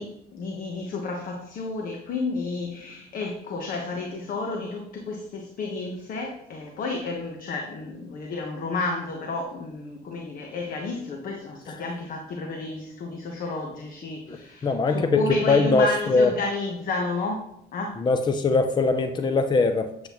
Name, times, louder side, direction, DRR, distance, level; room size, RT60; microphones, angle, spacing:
voice 1, 0.0-18.0, left 3 dB, 55° left, 2 dB, 1.2 m, -31 dB
voice 2, 14.3-16.3 18.0-20.1, left 3 dB, 25° left, 8 dB, 0.6 m, -22 dB
9.1 x 7.6 x 3.1 m, 0.77 s
cardioid pair, 110°, 17 cm